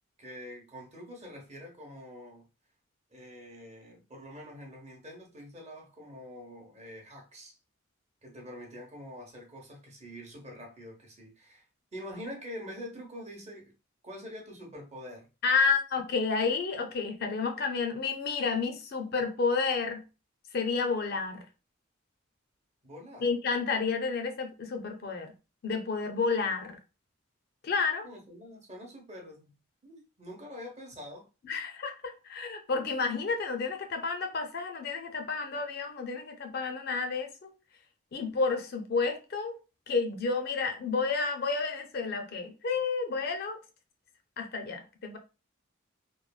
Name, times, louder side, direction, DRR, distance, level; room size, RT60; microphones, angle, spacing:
voice 1, 0.2-2.4 3.1-7.6 8.2-11.6 11.9-13.7 14.0-15.3 22.8-23.3 28.0-29.6 29.8-31.3, equal, 30° right, 0.7 m, -45 dB
voice 2, 15.4-20.0 20.5-21.4 23.2-25.3 25.6-26.8 27.6-28.1 31.4-37.5 38.1-39.6 39.9-43.6 44.4-45.2, left 4 dB, 45° left, 0.4 m, -30 dB
3.1 x 2.1 x 2.2 m
head